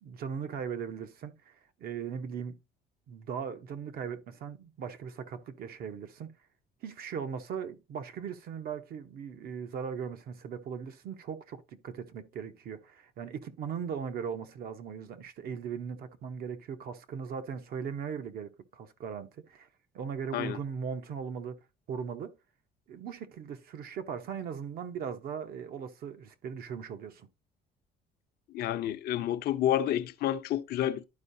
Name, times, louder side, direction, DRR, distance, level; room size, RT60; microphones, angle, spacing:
voice 1, 0.0-2.6 3.1-6.3 6.8-19.7 19.9-21.6 21.9-22.3 22.9-27.3, right 7 dB, 65° right, 1.0 m, -38 dB
voice 2, 28.5-31.0, left 12 dB, 70° left, 0.7 m, -29 dB
11.5 x 4.7 x 2.7 m
cardioid pair, 110°, 17 cm